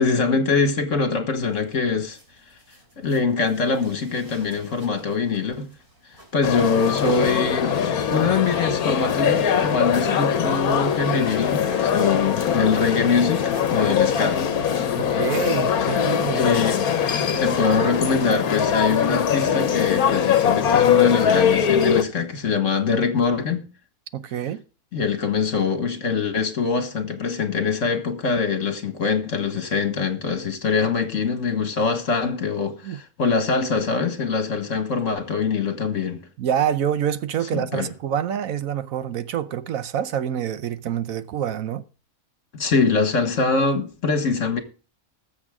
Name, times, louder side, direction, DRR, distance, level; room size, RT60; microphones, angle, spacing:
voice 1, 0.0-2.2 3.0-5.7 6.3-7.8 8.1-14.4 15.8-15.9 16.3-16.8 17.2-23.6 24.9-36.2 37.5-37.9 42.5-44.6, left 5 dB, 60° left, 1.9 m, -23 dB
sound 1, 1.4-17.9 18.9-19.0, right 1 dB, 35° right, 3.5 m, -47 dB
sound 2, 6.4-22.0, left 8 dB, 75° left, 1.4 m, -22 dB
voice 2, 15.0-16.4 24.1-24.6 32.8-33.0 36.4-41.8, right 9 dB, 70° right, 1.1 m, -26 dB
20.5 x 7.3 x 3.7 m
omnidirectional pair, 1.5 m